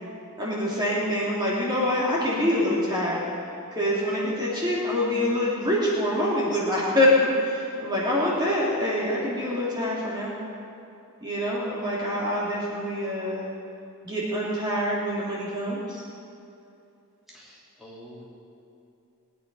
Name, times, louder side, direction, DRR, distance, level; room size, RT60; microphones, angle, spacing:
voice 1, 0.4-3.2 3.7-10.3 11.2-13.5 14.0-16.0, left 1 dB, 20° right, -7 dB, 2.8 m, -25 dB
voice 2, 17.3-18.2, equal, ahead, -8 dB, 3.0 m, -47 dB
21.5 x 10.0 x 5.5 m, 2.7 s
head